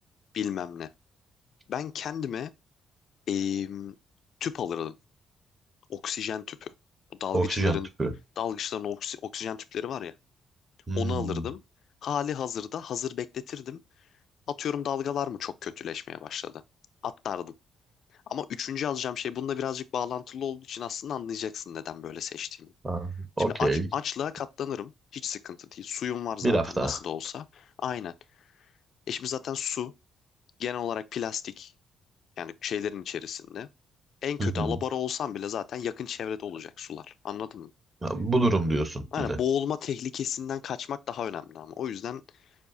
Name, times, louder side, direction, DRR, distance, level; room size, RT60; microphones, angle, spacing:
voice 1, 0.3-0.9 1.7-2.5 3.3-3.9 4.4-4.9 5.9-6.7 7.2-7.9 8.4-10.1 11.0-11.6 12.0-13.8 14.5-16.6 17.0-17.5 18.3-22.7 23.5-28.1 29.1-29.9 30.6-31.7 32.4-33.7 34.2-37.7 39.1-42.2, left 8 dB, 65° left, 0.3 m, -33 dB
voice 2, 7.3-8.1 10.9-11.5 22.8-23.9 26.4-27.0 34.4-34.8 38.0-39.4, right 2 dB, 25° right, 1.1 m, -27 dB
7.0 x 2.4 x 2.6 m
cardioid pair, 90°, 0 cm